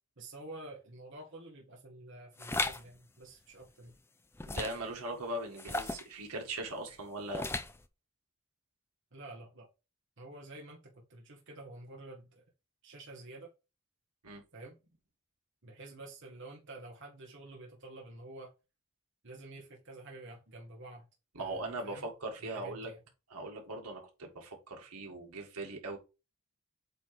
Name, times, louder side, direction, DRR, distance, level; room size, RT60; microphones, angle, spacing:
voice 1, 0.2-3.9 9.1-9.7 10.2-12.4 12.8-13.5 14.5-14.8 15.6-18.5 19.2-21.1 21.4-22.1 22.4-23.0, right 2 dB, 55° right, 1.3 m, -49 dB
sound 1, 2.4-2.8 4.4-4.9 5.6-6.1 7.3-7.8, left 2 dB, 10° left, 0.4 m, -35 dB
voice 2, 4.5-7.4 14.2-14.4 21.3-22.9 23.3-26.0, right 2 dB, 85° right, 2.0 m, -40 dB
8.2 x 3.1 x 4.3 m
head